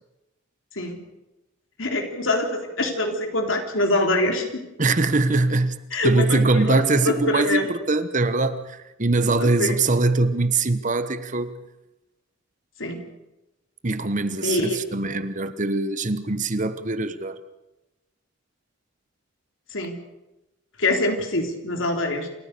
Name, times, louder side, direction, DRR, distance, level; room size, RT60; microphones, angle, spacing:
voice 1, 1.8-4.6 5.9-7.7 9.4-9.7 12.8-13.0 14.4-14.8 19.7-20.0 20.8-22.3, left 1 dB, 70° left, 3.6 m, -24 dB
voice 2, 4.8-5.8 6.0-11.6 13.8-17.4, right 3 dB, 40° right, 1.1 m, -22 dB
28.5 x 14.5 x 6.8 m
head